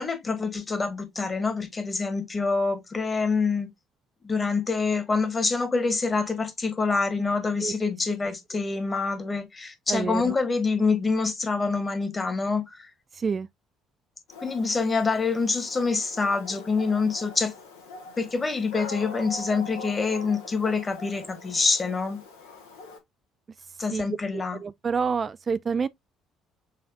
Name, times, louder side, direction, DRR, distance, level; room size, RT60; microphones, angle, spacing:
voice 1, 0.0-3.7 4.2-12.9 14.4-17.5 18.2-22.2 23.8-24.6, left 4 dB, 30° left, 1.7 m, -26 dB
voice 2, 9.9-10.3 13.1-13.5 23.9-24.0 24.3-25.9, right 5 dB, 35° right, 0.3 m, -28 dB
Dog, 14.3-23.0, left 3 dB, 75° left, 1.4 m, -42 dB
6.5 x 3.2 x 2.4 m
hypercardioid pair, 55°, 0 cm